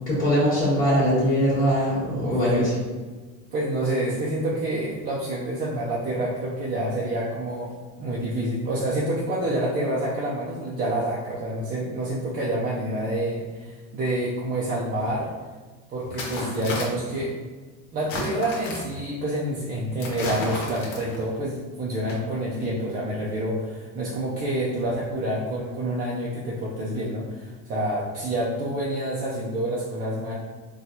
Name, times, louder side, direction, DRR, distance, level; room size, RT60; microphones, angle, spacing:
voice 1, 0.1-2.8, equal, 20° left, -12 dB, 1.3 m, -21 dB
voice 2, 3.5-7.7 8.0-15.3 15.9-17.3 17.9-30.3, right 1 dB, 25° right, -5 dB, 0.4 m, -28 dB
sound 1, 15.0-15.1 16.0-17.2 18.0-19.0 20.0-21.3 22.0-22.1, left 2 dB, 85° left, 1.1 m, -32 dB
4.2 x 2.2 x 2.6 m, 1.4 s
cardioid pair, 140°, 37 cm